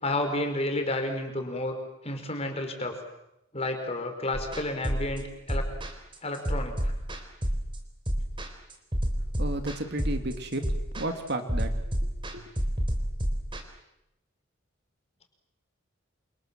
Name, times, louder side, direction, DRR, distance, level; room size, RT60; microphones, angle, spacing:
voice 1, 0.0-1.8 2.0-3.0 3.5-5.6 6.2-6.9, left 1 dB, 30° left, 6 dB, 4.8 m, -31 dB
sound 1, 4.3-13.6, equal, 25° right, 3.8 m, -30 dB
voice 2, 9.4-10.6 11.0-11.7 12.0-12.5, right 1 dB, 50° right, 6 dB, 2.6 m, -33 dB
28.0 x 28.0 x 7.5 m, 0.84 s
head